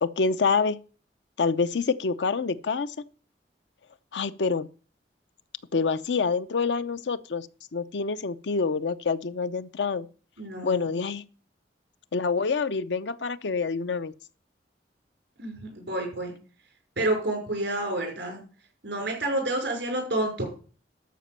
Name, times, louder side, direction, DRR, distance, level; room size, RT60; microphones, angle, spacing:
voice 1, 0.0-0.8 1.4-2.9 4.1-4.7 5.7-10.1 10.6-11.2 12.1-14.1, left 4 dB, 85° left, 0.6 m, -27 dB
voice 2, 10.4-10.9 15.4-16.3 17.0-18.4 18.8-20.5, right 1 dB, 75° right, 5.4 m, -29 dB
12.5 x 5.1 x 6.8 m
head